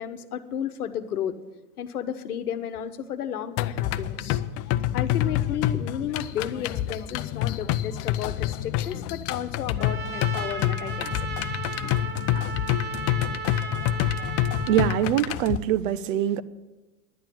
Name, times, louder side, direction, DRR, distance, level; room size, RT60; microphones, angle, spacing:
voice 1, 0.0-1.4 1.8-4.4 4.9-11.3, left 9 dB, 80° left, 10 dB, 1.1 m, -33 dB
sound 1, 3.6-15.6, left 13 dB, 35° left, 0.5 m, -27 dB
Trumpet, 9.8-15.1, right 6 dB, 25° right, 1.3 m, -35 dB
voice 2, 14.7-16.4, right 11 dB, 60° right, 18 dB, 0.8 m, -23 dB
11.0 x 8.5 x 9.0 m, 1.1 s
hypercardioid pair, 100°, 44 cm